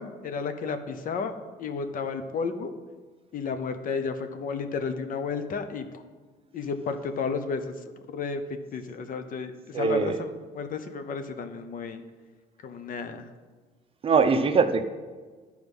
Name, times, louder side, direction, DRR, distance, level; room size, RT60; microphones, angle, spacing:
voice 1, 0.0-1.3 1.6-2.7 3.3-5.8 6.5-7.8 8.1-8.4 8.7-12.0 12.6-13.2, left 5 dB, 55° left, 9 dB, 0.8 m, -32 dB
voice 2, 9.7-10.1 14.0-14.8, right 5 dB, 35° right, 9 dB, 0.6 m, -22 dB
11.0 x 4.7 x 5.5 m, 1.4 s
cardioid pair, 110°, 17 cm